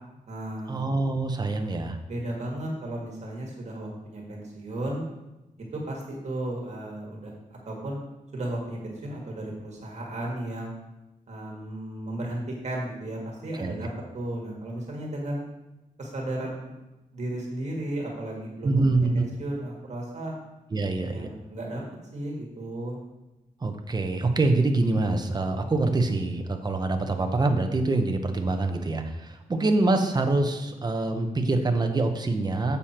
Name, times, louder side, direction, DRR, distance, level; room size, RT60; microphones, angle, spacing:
voice 1, 0.0-0.8 2.1-5.0 5.7-8.0 8.3-10.7 11.3-13.9 14.1-15.4 16.0-16.7 17.1-20.3 21.1-21.8 22.1-23.0, right 1 dB, 50° right, -2 dB, 1.8 m, -34 dB
voice 2, 0.7-2.0 13.6-13.7 18.6-19.2 20.7-21.3 23.6-32.8, right 2 dB, 30° right, 5 dB, 0.8 m, -25 dB
7.5 x 6.9 x 4.3 m, 0.99 s
wide cardioid pair, 160°, 15 cm